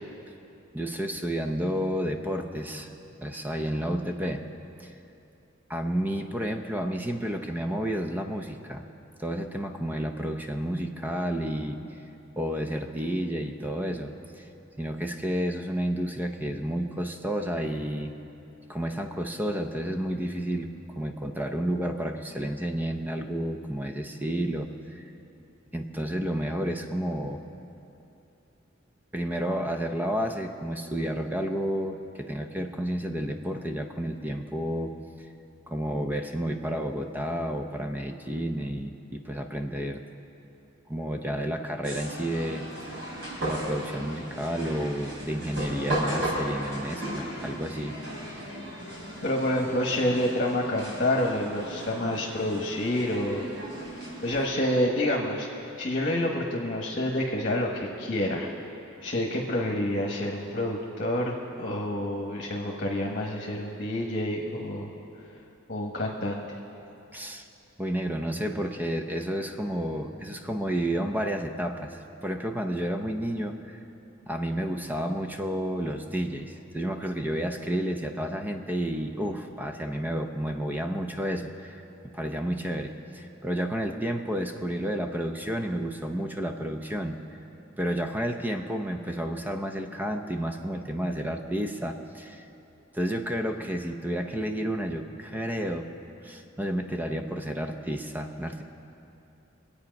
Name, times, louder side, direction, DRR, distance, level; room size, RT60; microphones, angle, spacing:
voice 1, 0.7-2.9 3.2-4.4 4.8-4.9 5.7-8.8 9.2-11.8 12.4-14.5 14.8-18.1 18.7-20.7 21.0-25.0 25.7-27.4 29.1-35.0 35.7-40.0 40.9-43.0 43.4-48.0 67.1-67.5 67.8-73.8 74.3-81.8 82.1-87.2 87.8-92.5 92.9-95.9 96.2-98.6, equal, 10° right, 5 dB, 0.6 m, -31 dB
sound 1, 41.8-54.5, right 1 dB, 65° right, 4.3 m, -36 dB
voice 2, 49.2-53.5 53.9-57.7 58.0-58.5 59.0-64.9 65.7-66.4, left 1 dB, 45° left, -1 dB, 1.3 m, -28 dB
23.5 x 8.5 x 5.2 m, 2.8 s
head